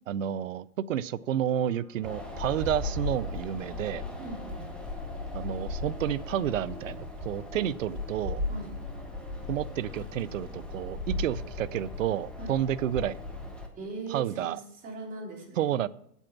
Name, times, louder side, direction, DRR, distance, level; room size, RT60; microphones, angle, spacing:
voice 1, 0.1-4.0 5.3-8.4 9.5-13.2 14.1-14.6 15.6-15.9, right 11 dB, 55° right, 17 dB, 0.5 m, -30 dB
Wind instrument woodwind instrument, 1.1-6.9 7.6-13.0, left 2 dB, 50° left, 3.9 m, -55 dB
Wind, 2.0-13.7, left 2 dB, ahead, 0.8 m, -37 dB
voice 2, 4.2-4.7 8.5-8.7 12.4-12.6 13.7-15.8, right 3 dB, 20° right, -3 dB, 3.3 m, -40 dB
8.3 x 8.1 x 5.8 m, 0.74 s
figure-of-eight pair, 120°, 46 cm